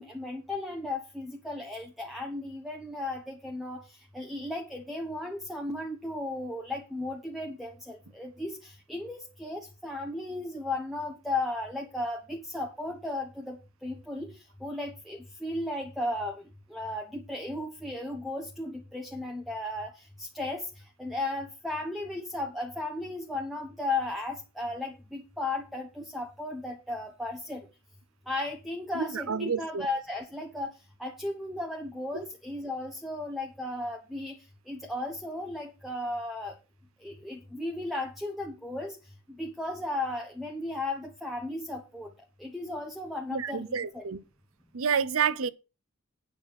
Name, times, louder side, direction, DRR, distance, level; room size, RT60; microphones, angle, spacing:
voice 1, 0.0-27.7 28.3-36.6 37.0-39.0 39.3-42.1 42.4-44.0, left 2 dB, ahead, 0.9 m, -35 dB
voice 2, 29.0-29.9 43.3-44.2 44.7-45.5, right 6 dB, 75° right, 0.7 m, -29 dB
8.9 x 6.1 x 6.4 m
head